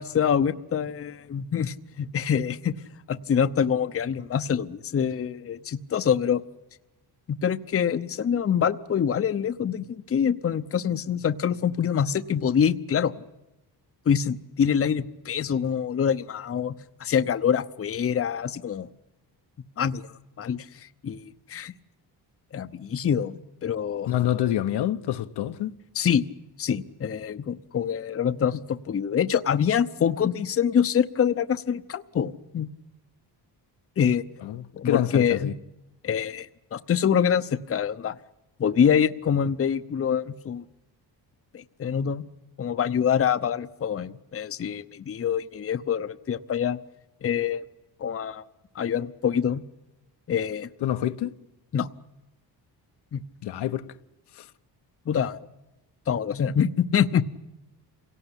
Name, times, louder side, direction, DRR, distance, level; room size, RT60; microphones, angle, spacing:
voice 1, 0.0-2.7 3.1-6.4 7.3-13.1 14.1-18.9 19.8-21.7 22.5-24.1 25.9-26.2 26.6-32.7 34.0-34.2 34.7-35.5 36.0-38.2 38.6-40.6 41.5-42.2 42.6-46.8 47.2-47.7 48.0-48.4 48.7-49.6 50.3-50.7 51.7-51.9 53.1-53.2 55.1-55.4 56.1-57.2, left 8 dB, 35° left, 0.9 m, -25 dB
voice 2, 24.1-25.7 34.4-35.5 50.8-51.3 53.4-53.9 54.3-54.5, left 12 dB, 75° left, 1.1 m, -27 dB
27.5 x 18.0 x 10.0 m
cardioid pair, 125°, 41 cm